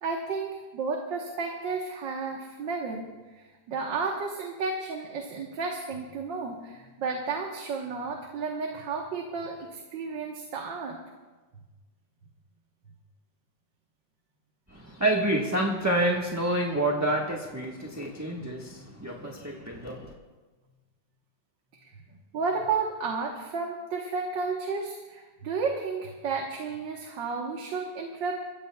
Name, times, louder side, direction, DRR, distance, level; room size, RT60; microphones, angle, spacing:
voice 1, 0.0-3.1 3.3-11.0 21.8-21.9 22.3-28.4, right 4 dB, 75° right, 0 dB, 2.0 m, -32 dB
voice 2, 14.7-20.1, right 1 dB, 10° right, -2 dB, 1.2 m, -28 dB
28.5 x 15.0 x 2.3 m, 1.3 s
omnidirectional pair, 2.0 m